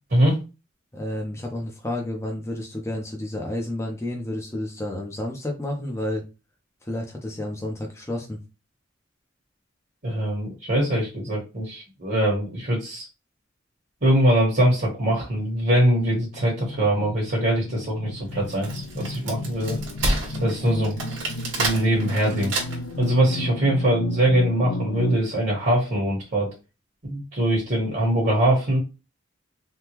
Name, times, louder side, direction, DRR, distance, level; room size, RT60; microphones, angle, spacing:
voice 1, 0.9-6.2 6.8-8.4, left 1 dB, 15° left, 0 dB, 0.6 m, -30 dB
voice 2, 10.0-13.0 14.0-19.8 20.4-21.0 21.6-22.5 23.0-26.5 27.0-28.8, right 1 dB, 50° right, -3 dB, 1.3 m, -22 dB
sound 1, 15.4-25.2, left 2 dB, 80° left, 0.4 m, -33 dB
Wood, 18.3-23.0, right 2 dB, 70° right, 1.3 m, -29 dB
3.5 x 2.3 x 2.9 m, 0.28 s
head